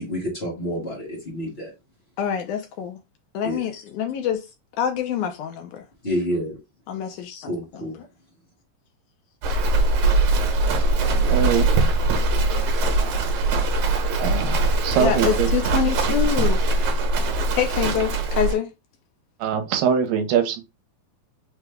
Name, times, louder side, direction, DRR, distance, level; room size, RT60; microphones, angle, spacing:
voice 1, 0.0-1.7 3.4-3.6 6.0-6.6 7.4-8.0, equal, 35° left, 0.9 m, -28 dB
voice 2, 2.2-3.0 3.3-4.4 4.8-5.8 6.9-7.5 7.7-7.8 15.0-16.6 17.5-18.7, left 9 dB, 85° left, 1.8 m, -25 dB
Livestock farm animals working animals, 9.4-18.5, right 2 dB, 65° right, 2.2 m, -21 dB
voice 3, 11.3-11.6 14.2-15.5 19.4-20.6, right 8 dB, 85° right, 2.4 m, -23 dB
5.8 x 2.2 x 3.3 m
omnidirectional pair, 4.0 m